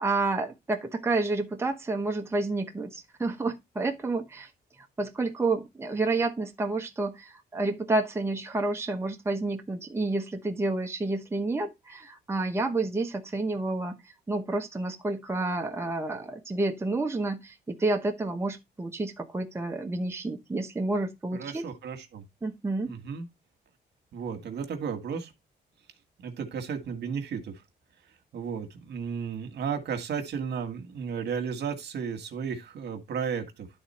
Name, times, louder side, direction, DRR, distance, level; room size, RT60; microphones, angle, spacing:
voice 1, 0.0-4.5 5.0-14.0 14.3-21.7 22.4-22.9, right 2 dB, 15° right, 1.0 m, -29 dB
voice 2, 21.3-22.2 22.9-23.3 24.1-25.3 26.2-27.6 28.3-33.7, right 6 dB, 65° right, 1.6 m, -34 dB
11.0 x 3.9 x 4.3 m
cardioid pair, 120°, 18 cm